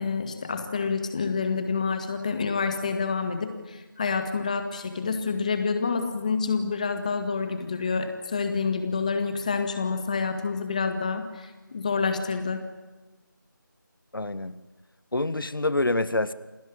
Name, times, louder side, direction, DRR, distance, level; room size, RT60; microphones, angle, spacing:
voice 1, 0.0-12.7, left 5 dB, 20° left, 7 dB, 1.9 m, -28 dB
voice 2, 14.1-14.6 15.1-16.3, left 2 dB, 85° left, 14 dB, 1.7 m, -26 dB
28.0 x 17.5 x 8.8 m, 1.2 s
figure-of-eight pair, 175°, 11 cm